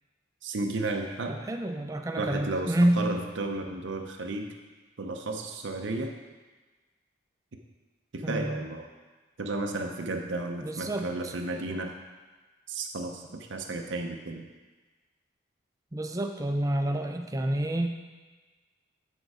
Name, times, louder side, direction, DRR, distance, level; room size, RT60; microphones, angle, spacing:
voice 1, 0.4-1.4 2.2-4.5 5.0-6.1 8.1-8.9 9.4-12.0 12.7-14.5, right 2 dB, 70° right, 3 dB, 0.7 m, -33 dB
voice 2, 1.3-3.1 8.2-8.6 10.6-11.3 15.9-17.9, right 1 dB, 15° right, 5 dB, 0.5 m, -28 dB
8.0 x 6.4 x 4.8 m, 1.3 s
head